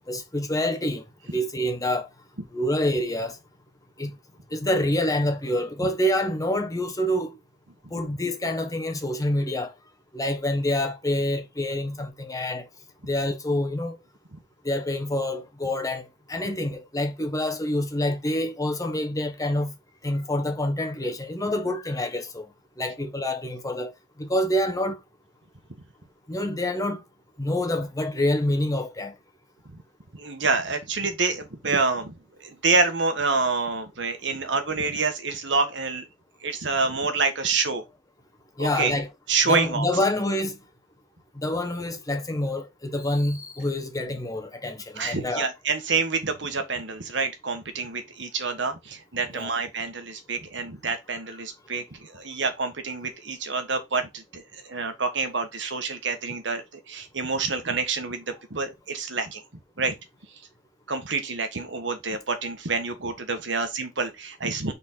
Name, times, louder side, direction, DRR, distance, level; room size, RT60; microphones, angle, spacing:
voice 1, 0.1-1.0 1.3-2.1 2.5-3.4 4.0-4.1 4.5-7.4 7.9-9.7 10.1-12.7 13.0-13.9 14.6-19.7 20.0-22.5 22.8-23.9 24.2-25.0 26.3-27.0 27.4-29.1 38.6-39.1 39.5-40.6 41.4-45.5 49.3-49.5, left 1 dB, 20° left, 1.2 m, -27 dB
voice 2, 30.1-32.1 32.4-36.0 36.4-37.8 38.6-38.9 39.3-39.9 44.9-59.4 59.8-59.9 60.9-64.7, right 4 dB, 70° right, 1.4 m, -27 dB
6.2 x 4.1 x 4.4 m
head